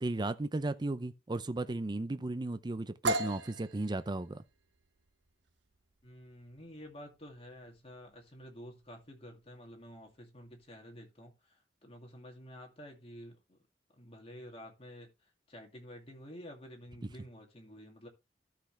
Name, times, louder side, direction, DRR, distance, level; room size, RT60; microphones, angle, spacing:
voice 1, 0.0-4.4, right 2 dB, 25° right, 0.5 m, -35 dB
sound 1, 3.0-10.7, right 1 dB, 80° right, 1.0 m, -40 dB
voice 2, 6.0-13.6 13.9-15.1 15.5-18.1, equal, 35° left, 2.3 m, -50 dB
13.0 x 5.9 x 3.2 m
head